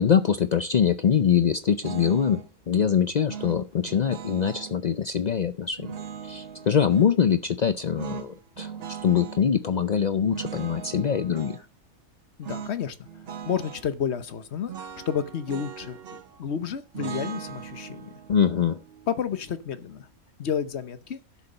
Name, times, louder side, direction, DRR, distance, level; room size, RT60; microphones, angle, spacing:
voice 1, 0.0-2.4 2.7-5.9 6.2-8.7 9.0-11.6 18.3-18.8, left 7 dB, 80° left, 0.3 m, -23 dB
sound 1, 1.8-2.5 3.3-4.8 5.8-7.2 8.0-9.4 10.3-11.6 12.4-12.8 13.1-13.9 14.7-16.4 16.9-20.0, right 7 dB, 50° right, 0.9 m, -39 dB
voice 2, 12.4-13.0 13.4-14.7 15.1-18.1 19.1-20.1 20.4-21.2, left 7 dB, 55° left, 1.1 m, -30 dB
11.5 x 6.9 x 5.4 m
omnidirectional pair, 1.5 m